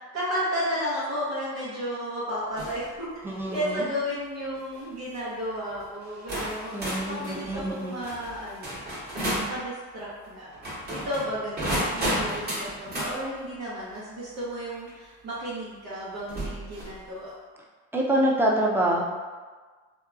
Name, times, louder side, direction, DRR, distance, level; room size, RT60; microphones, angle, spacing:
voice 1, 0.1-6.8 7.0-8.8 9.5-10.5 10.9-17.3, equal, 85° right, -11 dB, 0.8 m, -33 dB
sound 1, 2.6-2.9 3.4-3.7 4.5-4.8 5.7-5.8 6.3-9.5 10.5-13.1 14.9-15.0 16.3-17.0, equal, 35° right, 1.0 m, -32 dB
voice 2, 3.2-3.8 6.7-8.0 17.9-19.0, right 1 dB, 10° right, -3 dB, 0.4 m, -26 dB
2.8 x 2.2 x 2.3 m, 1.4 s
cardioid pair, 90°, 30 cm